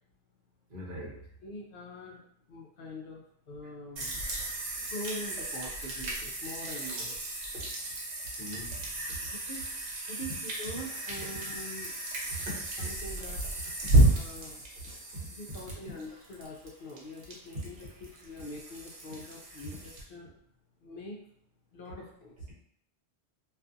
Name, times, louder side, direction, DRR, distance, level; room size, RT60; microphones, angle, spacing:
voice 1, 0.7-1.2 8.4-8.8 12.4-12.9 13.8-13.9 15.1-15.3, right 1 dB, 55° right, -5 dB, 0.9 m, -40 dB
voice 2, 1.4-2.2 2.5-4.2 4.6-7.2 9.5-9.7 10.1-11.9 12.8-13.4 14.1-14.6 15.3-20.3 20.8-21.2 21.7-22.4, left 1 dB, 60° left, -1 dB, 0.6 m, -44 dB
sound 1, 4.0-20.0, right 2 dB, 85° right, 1.0 m, -32 dB
2.4 x 2.4 x 2.5 m, 0.67 s
omnidirectional pair, 1.1 m